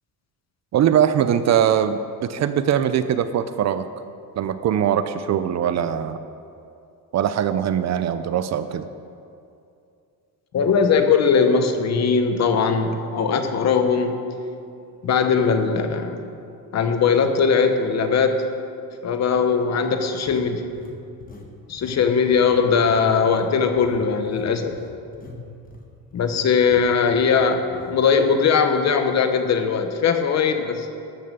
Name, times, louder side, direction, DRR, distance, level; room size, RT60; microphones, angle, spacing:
voice 1, 0.7-3.9 4.4-6.2 7.1-8.9, right 9 dB, 50° right, 11 dB, 0.5 m, -21 dB
voice 2, 10.5-14.2 15.0-16.2 16.7-18.5 19.0-20.7 21.7-24.7 26.1-30.9, left 5 dB, 45° left, 7 dB, 0.9 m, -20 dB
sound 1, 15.8-15.9 16.5-16.7 20.3-21.5 21.8-22.0 22.3-26.4 26.7-26.9 27.2-27.4 27.7-27.9, left 4 dB, 25° left, 1.2 m, -43 dB
12.5 x 7.0 x 6.6 m, 2.5 s
cardioid pair, 170°, 37 cm